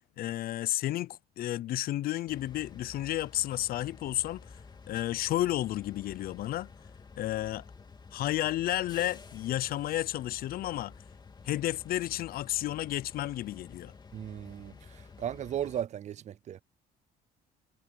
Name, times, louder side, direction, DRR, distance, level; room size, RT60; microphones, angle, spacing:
voice 1, 0.2-4.4 4.9-6.7 7.2-7.7 8.1-10.9 11.5-13.9, left 14 dB, 60° left, 0.5 m, -32 dB
sound 1, 2.3-15.8, left 4 dB, 25° left, 2.9 m, -51 dB
voice 2, 14.1-16.6, right 10 dB, 45° right, 0.4 m, -36 dB
cardioid pair, 110°, 17 cm